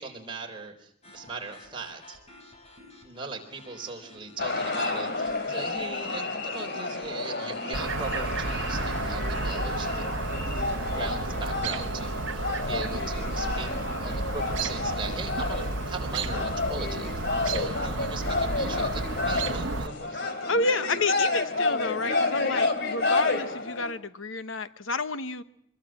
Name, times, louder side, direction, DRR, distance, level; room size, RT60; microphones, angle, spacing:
voice 1, 0.0-2.2 3.0-13.7 14.0-20.3, right 3 dB, 25° right, 2 dB, 4.0 m, -39 dB
sound 1, 1.0-16.0, left 1 dB, 30° left, 5.7 m, -53 dB
sound 2, 4.4-23.9, left 3 dB, 55° left, 2.9 m, -30 dB
Chirp tweet, 7.7-19.9, right 3 dB, 65° right, 1.1 m, -32 dB
voice 2, 20.5-25.4, left 3 dB, 75° left, 11 dB, 1.1 m, -30 dB
25.0 x 22.0 x 7.6 m, 0.70 s
head